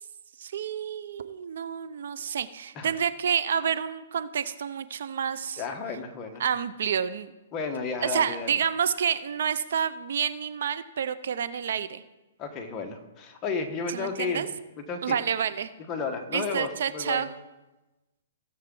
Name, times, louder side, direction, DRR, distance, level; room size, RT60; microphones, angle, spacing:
voice 1, 0.4-5.6 6.4-7.3 8.0-12.0 13.9-14.5 15.0-15.7 16.3-17.3, right 7 dB, 65° right, 14 dB, 0.6 m, -29 dB
voice 2, 5.6-6.4 7.5-8.5 12.4-14.5 14.8-15.2 15.9-17.3, left 4 dB, 20° left, 3 dB, 1.2 m, -33 dB
17.0 x 7.0 x 3.8 m, 1.1 s
hypercardioid pair, 155°, 0 cm